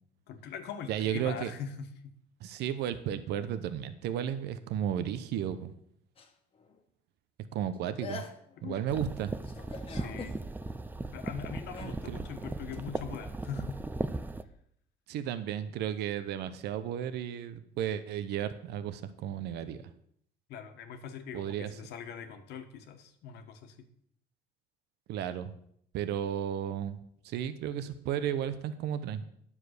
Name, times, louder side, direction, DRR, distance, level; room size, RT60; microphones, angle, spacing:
voice 1, 0.3-2.2 8.6-8.9 9.9-10.4 11.1-13.8 20.5-23.8, left 7 dB, 80° left, 7 dB, 1.5 m, -42 dB
voice 2, 0.9-1.5 2.4-5.7 7.5-8.2 8.6-9.3 10.0-10.1 11.8-12.2 15.1-19.8 21.3-21.7 25.1-25.5 25.9-27.0 27.2-29.2, right 10 dB, 80° right, 12 dB, 0.9 m, -34 dB
sound 1, 6.2-6.8 7.7-7.8 8.0-8.7 9.5-10.4 11.7-12.0 12.7-12.8, left 3 dB, 35° left, 1.4 m, -44 dB
sound 2, 8.9-14.4, right 2 dB, 10° right, 0.6 m, -37 dB
10.0 x 7.4 x 6.6 m, 0.67 s
cardioid pair, 110°, 17 cm